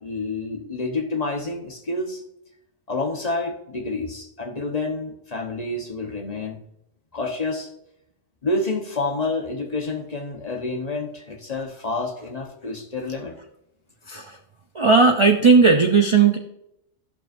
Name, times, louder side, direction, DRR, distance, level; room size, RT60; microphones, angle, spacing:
voice 1, 0.0-2.2 2.9-6.6 7.1-7.7 8.4-13.4, left 3 dB, 35° left, 2 dB, 1.1 m, -28 dB
voice 2, 14.1-14.4 14.7-16.4, right 4 dB, 40° right, 4 dB, 0.4 m, -16 dB
15.0 x 5.8 x 2.6 m, 0.82 s
omnidirectional pair, 1.2 m